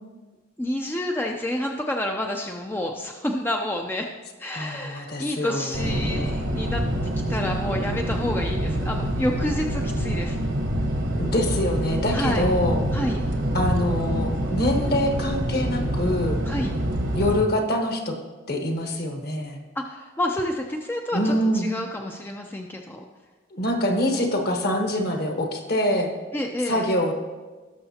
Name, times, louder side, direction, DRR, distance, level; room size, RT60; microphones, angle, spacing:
voice 1, 0.6-4.1 4.4-6.8 7.3-10.4 12.1-12.4 12.9-13.2 16.5-16.7 19.8-23.0 26.3-26.8, left 1 dB, 10° left, 2 dB, 0.4 m, -29 dB
voice 2, 4.5-6.3 11.2-12.9 13.5-16.4 17.1-18.1 18.5-19.6 21.1-21.7 23.5-26.1 26.6-27.1, left 1 dB, 50° left, 3 dB, 1.3 m, -25 dB
sound 1, 5.7-17.4, equal, 65° right, 1.1 m, -26 dB
17.5 x 6.6 x 2.8 m, 1.3 s
head